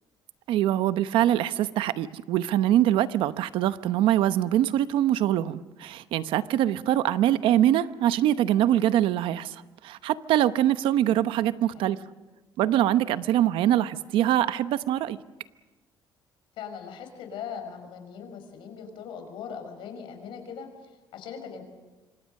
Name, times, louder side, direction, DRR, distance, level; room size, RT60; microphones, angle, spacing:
voice 1, 0.5-12.0 12.6-15.2, right 12 dB, 85° right, 13 dB, 0.9 m, -23 dB
voice 2, 11.6-11.9 16.6-21.6, left 7 dB, 75° left, 6 dB, 5.5 m, -40 dB
27.0 x 25.0 x 6.6 m, 1.2 s
cardioid pair, 155°, 9 cm